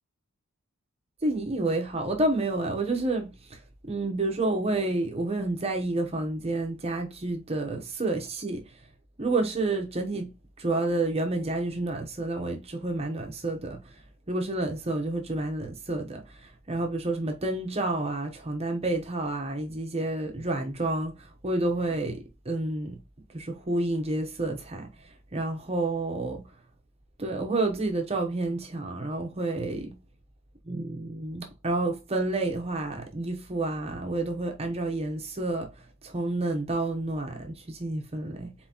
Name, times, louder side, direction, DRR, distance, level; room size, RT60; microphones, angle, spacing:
voice 1, 1.2-3.6 3.9-8.6 9.2-10.3 10.6-14.0 14.3-23.0 23.3-26.4 27.2-30.0 30.7-38.5, right 2 dB, 30° right, 0.9 m, -29 dB
4.3 x 3.8 x 2.8 m
head